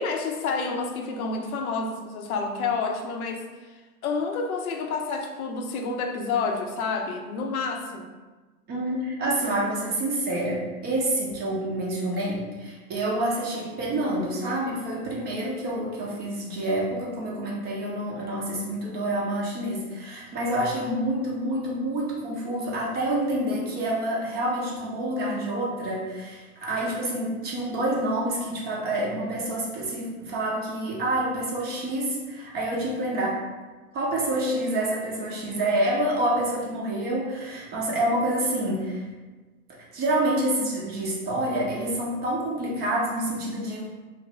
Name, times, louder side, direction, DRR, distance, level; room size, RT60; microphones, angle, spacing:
voice 1, 0.0-8.1, left 4 dB, 70° left, 4 dB, 0.6 m, -29 dB
voice 2, 8.7-33.4 33.9-39.1 39.9-43.8, right 1 dB, 20° right, -4 dB, 0.5 m, -27 dB
2.9 x 2.5 x 3.0 m, 1.3 s
hypercardioid pair, 110°, 45 cm